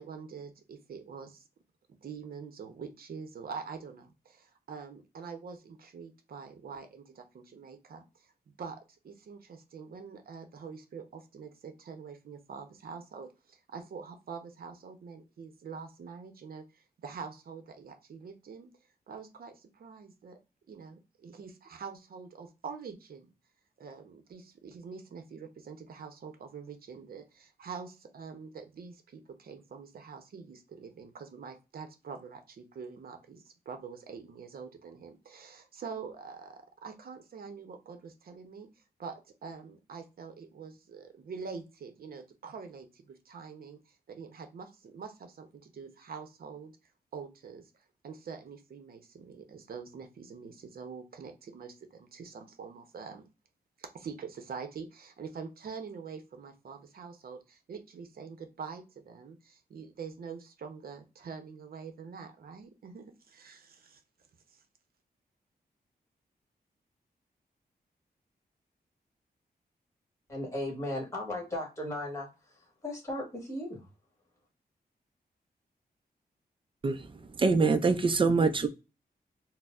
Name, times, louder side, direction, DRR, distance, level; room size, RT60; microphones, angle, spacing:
voice 1, 0.0-1.4 2.0-8.3 8.6-8.8 9.0-18.7 19.1-20.4 20.7-23.3 23.8-38.7 39.0-43.8 44.1-46.7 47.1-47.7 48.0-53.3 53.8-64.0 64.5-64.6, right 5 dB, 65° right, 0.7 m, -45 dB
voice 2, 70.3-73.9, left 1 dB, 20° left, 1.4 m, -36 dB
voice 3, 77.4-78.7, right 4 dB, 30° right, 0.4 m, -24 dB
4.3 x 2.0 x 2.4 m
wide cardioid pair, 165°, 17 cm